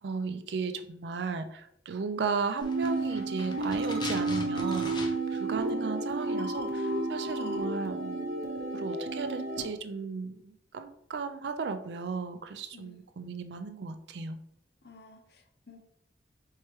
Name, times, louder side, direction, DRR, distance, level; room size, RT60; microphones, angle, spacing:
voice 1, 0.0-8.3 8.7-14.4, right 4 dB, 80° right, 8 dB, 0.4 m, -35 dB
sound 1, 2.6-5.4 5.7-5.8, left 2 dB, 25° left, 0.5 m, -41 dB
sound 2, 2.6-9.6, right 2 dB, 60° right, 0.8 m, -32 dB
voice 2, 12.7-13.0 14.8-15.8, left 3 dB, 65° left, 5 dB, 0.7 m, -54 dB
4.5 x 3.1 x 3.0 m, 0.75 s
head